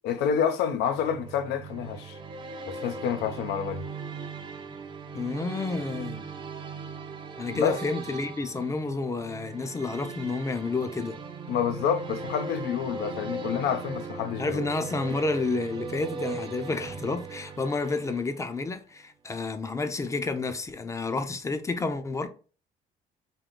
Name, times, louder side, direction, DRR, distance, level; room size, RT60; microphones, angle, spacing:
voice 1, 0.0-2.2 2.7-3.8 7.5-7.8 11.5-14.7 15.1-15.2, left 8 dB, 80° left, 0.6 m, -28 dB
sound 1, 0.9-18.7, right 4 dB, 30° right, 0.6 m, -39 dB
voice 2, 5.1-6.2 7.4-11.2 14.4-22.3, left 3 dB, 20° left, 0.5 m, -30 dB
3.7 x 2.6 x 3.7 m
cardioid pair, 110°, 17 cm